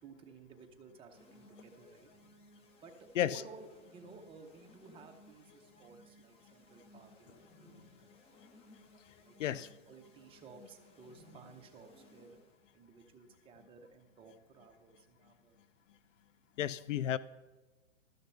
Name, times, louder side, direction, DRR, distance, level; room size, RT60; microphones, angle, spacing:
voice 1, 0.0-2.1 2.8-8.2 9.2-12.4 12.7-15.6, right 4 dB, 15° right, 0.7 m, -55 dB
sound 1, 1.1-12.7, left 1 dB, 15° left, 0.8 m, -61 dB
voice 2, 16.6-17.2, left 11 dB, 70° left, 0.5 m, -32 dB
12.5 x 6.7 x 5.6 m
hypercardioid pair, 130°, 39 cm